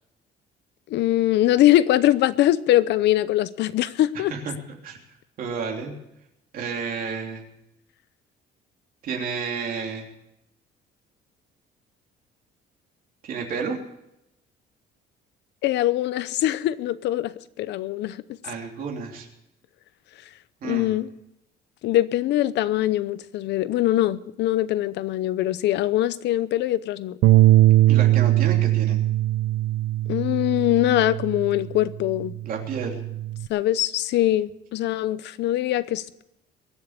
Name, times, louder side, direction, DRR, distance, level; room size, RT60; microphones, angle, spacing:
voice 1, 0.9-4.3 15.6-18.2 20.6-21.1 21.8-27.2 30.1-32.3 33.5-36.2, left 14 dB, 70° left, 0.7 m, -22 dB
voice 2, 4.1-4.5 4.8-5.0 5.4-5.9 6.5-7.4 9.0-10.1 13.2-13.8 18.4-19.3 20.6-20.9 27.9-29.0 32.4-33.0, right 5 dB, 50° right, 3.2 m, -31 dB
Bass guitar, 27.2-31.7 32.1-33.5, right 15 dB, 75° right, 0.6 m, -20 dB
22.5 x 7.5 x 6.7 m
cardioid pair, 175°, 19 cm